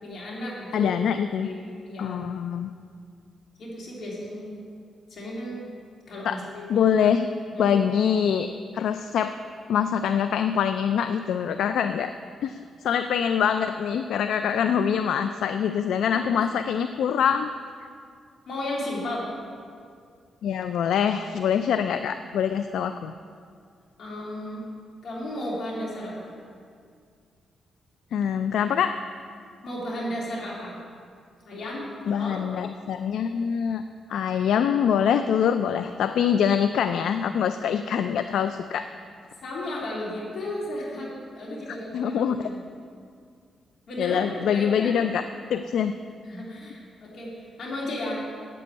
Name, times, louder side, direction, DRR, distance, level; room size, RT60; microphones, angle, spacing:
voice 1, 0.0-0.9 1.4-2.2 3.6-4.6 5.1-5.6 6.1-6.9 7.5-7.7 16.1-16.2 18.4-19.3 24.0-24.7 25.0-26.3 29.6-30.8 31.4-32.4 39.4-42.6 43.9-44.9 46.2-48.2, left 1 dB, 60° left, -5 dB, 3.4 m, -34 dB
voice 2, 0.7-1.5 2.0-2.7 6.2-6.4 6.7-7.3 7.6-9.4 9.7-12.1 12.4-17.5 20.4-23.1 28.1-29.0 32.1-33.8 34.1-38.9 41.9-42.5 44.0-45.2 45.5-45.9, left 8 dB, 80° left, 9 dB, 0.3 m, -24 dB
8.4 x 7.7 x 8.1 m, 2.2 s
cardioid pair, 95°, 0 cm